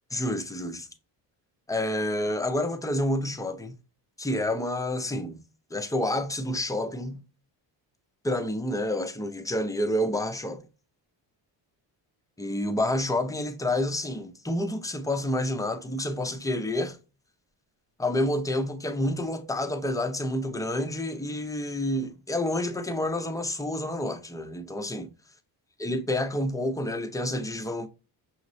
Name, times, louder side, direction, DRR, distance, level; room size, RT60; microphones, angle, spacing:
voice 1, 0.1-0.9 1.7-3.8 4.2-5.4 5.7-7.2 8.2-10.6 12.4-17.0 18.0-25.1 25.8-27.9, left 1 dB, 10° left, 0.5 m, -29 dB
6.3 x 3.0 x 2.6 m
cardioid pair, 135°, 44 cm